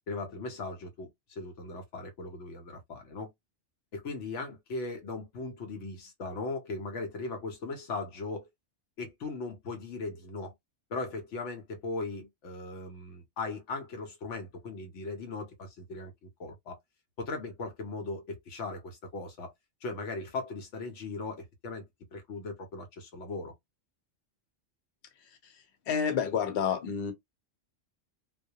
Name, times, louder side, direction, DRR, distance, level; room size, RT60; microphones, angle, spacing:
voice 1, 0.1-3.3 3.9-8.5 9.0-10.5 10.9-16.1 16.4-16.8 17.2-19.5 19.8-21.9 22.1-23.5, left 3 dB, 80° left, 1.0 m, -38 dB
voice 2, 25.9-27.1, left 7 dB, 60° left, 0.9 m, -29 dB
2.2 x 2.1 x 2.7 m
omnidirectional pair, 1.2 m